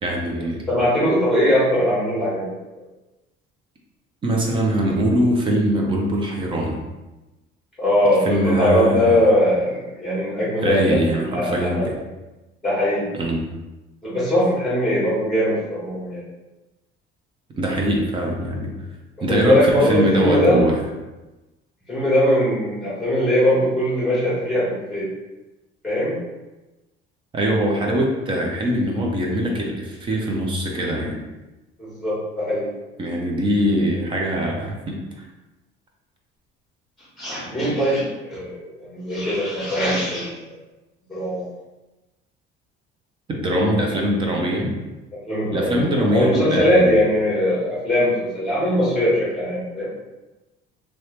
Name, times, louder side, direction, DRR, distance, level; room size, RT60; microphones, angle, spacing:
voice 1, 0.0-0.6 4.2-6.8 8.2-9.2 10.6-12.0 13.1-13.5 17.6-18.7 19.2-20.8 27.3-31.2 33.0-35.3 43.3-44.8 45.5-47.0, right 1 dB, 25° right, -1 dB, 0.5 m, -22 dB
voice 2, 0.7-2.5 7.8-10.8 11.1-11.9 12.6-13.1 14.0-16.2 19.3-20.6 21.9-25.1 25.8-26.2 31.8-32.7 37.2-40.5 41.1-41.4 45.2-49.9, equal, ahead, -8 dB, 1.3 m, -20 dB
3.0 x 2.9 x 3.1 m, 1.1 s
cardioid pair, 175°, 21 cm